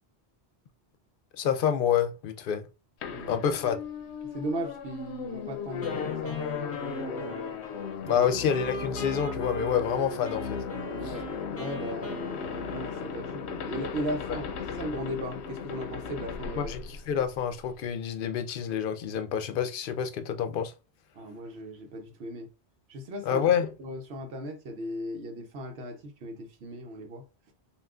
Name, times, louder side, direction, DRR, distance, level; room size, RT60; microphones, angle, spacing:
voice 1, 1.4-2.7 3.3-3.8 8.1-10.6 16.6-20.7 23.2-23.7, left 8 dB, 60° left, 0.7 m, -28 dB
sound 1, 3.0-17.7, left 6 dB, 90° left, 0.9 m, -36 dB
voice 2, 3.1-3.4 4.2-7.4 8.1-8.2 11.0-16.7 21.1-22.5 22.9-23.4 23.8-27.5, right 1 dB, 75° right, 1.0 m, -37 dB
Wind instrument woodwind instrument, 5.8-13.7, right 2 dB, 15° left, 0.6 m, -42 dB
5.5 x 2.4 x 2.3 m
omnidirectional pair, 1.1 m